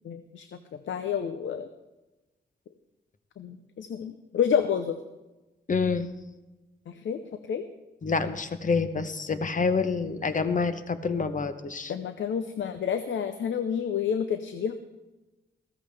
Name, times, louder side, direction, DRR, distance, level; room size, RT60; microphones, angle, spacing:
voice 1, 0.0-0.5 0.9-1.7 3.4-5.0 6.9-7.2 7.5-7.6 11.9-14.7, left 7 dB, 90° left, 9 dB, 0.7 m, -29 dB
voice 2, 5.7-6.1 8.0-11.9, left 4 dB, 45° left, 10 dB, 0.9 m, -27 dB
15.0 x 14.0 x 3.4 m, 1.1 s
cardioid pair, 75°, 19 cm